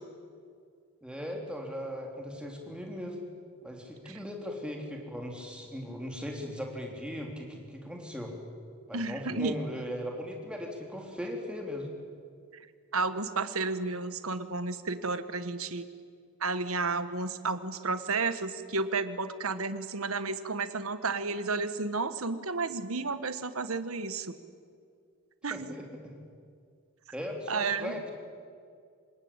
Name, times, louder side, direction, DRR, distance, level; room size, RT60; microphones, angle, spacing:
voice 1, 1.0-3.2 3.6-8.3 8.9-11.9 25.5-26.1 27.1-28.1, equal, 5° right, 1 dB, 3.4 m, -38 dB
voice 2, 8.9-9.6 12.5-12.7 12.9-15.9 16.4-24.4 25.4-25.7 27.5-28.0, right 3 dB, 75° right, 12 dB, 1.4 m, -32 dB
25.5 x 20.5 x 8.9 m, 2.2 s
head